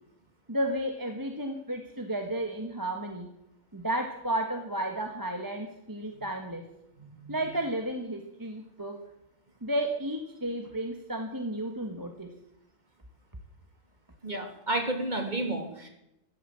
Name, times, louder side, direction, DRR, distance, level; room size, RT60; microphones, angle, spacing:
voice 1, 0.5-3.3 3.7-6.7 7.3-9.0 9.6-12.3, right 1 dB, 15° right, 4 dB, 1.5 m, -32 dB
voice 2, 14.2-15.9, right 1 dB, 35° right, 4 dB, 2.9 m, -31 dB
15.0 x 11.5 x 7.6 m, 0.85 s
omnidirectional pair, 1.4 m